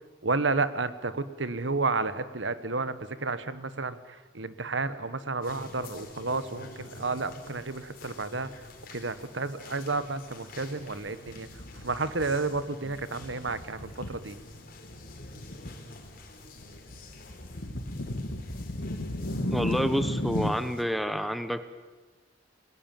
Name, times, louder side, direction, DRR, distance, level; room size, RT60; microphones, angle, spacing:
voice 1, 0.2-8.5 8.9-11.5 11.7-14.4, right 3 dB, 90° right, 13 dB, 1.5 m, -31 dB
sound 1, 5.4-20.8, left 2 dB, 55° left, 3.8 m, -48 dB
sound 2, 11.3-12.6 12.8-14.5 14.8-15.7 16.0-20.5, left 1 dB, 80° left, 2.2 m, -34 dB
voice 2, 19.5-21.7, equal, ahead, 11 dB, 1.2 m, -28 dB
29.0 x 20.0 x 9.2 m, 1.3 s
head